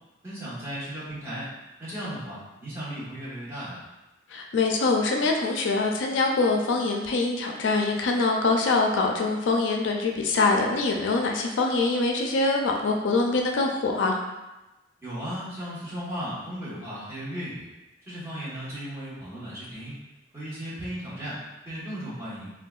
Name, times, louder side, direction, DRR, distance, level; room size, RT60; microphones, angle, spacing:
voice 1, 0.2-1.5 1.8-3.8 15.0-17.7 18.1-20.0 20.3-21.4 21.6-22.5, equal, 15° right, -11 dB, 1.1 m, -36 dB
voice 2, 4.3-14.2, left 3 dB, 85° left, 2 dB, 0.4 m, -24 dB
3.5 x 2.3 x 2.3 m, 1.0 s
head